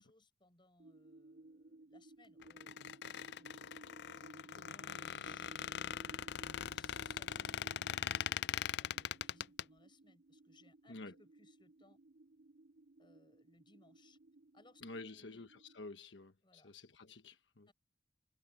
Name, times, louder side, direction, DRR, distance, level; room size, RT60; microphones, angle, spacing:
voice 1, 0.0-3.5 4.0-12.0 13.0-14.2 14.5-15.4 16.4-16.7 17.7-17.8, left 2 dB, 25° left, 6.4 m, -67 dB
sound 1, 0.8-15.8, right 2 dB, 70° right, 2.4 m, -59 dB
Squeak, 2.4-9.6, left 9 dB, 65° left, 0.4 m, -41 dB
voice 2, 14.8-17.7, left 3 dB, 90° left, 1.2 m, -50 dB
head